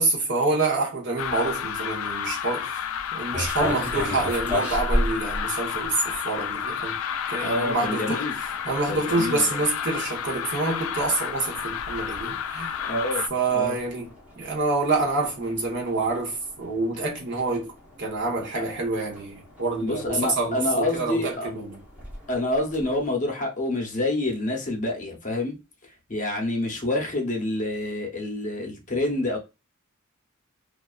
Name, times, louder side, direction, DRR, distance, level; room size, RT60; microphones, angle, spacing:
voice 1, 0.0-2.8 3.1-7.0 7.3-12.8 13.3-17.7 18.0-21.8, right 3 dB, 55° right, 0.8 m, -27 dB
sound 1, 1.2-13.3, left 8 dB, 70° left, 0.3 m, -31 dB
sound 2, 3.3-23.1, left 1 dB, 5° right, 0.8 m, -36 dB
voice 2, 7.4-8.4 8.9-9.6 12.8-13.2 13.5-13.7 18.6-18.7 19.8-21.5 22.3-25.5 26.1-29.4, left 2 dB, 35° left, 0.7 m, -27 dB
2.4 x 2.3 x 2.3 m
head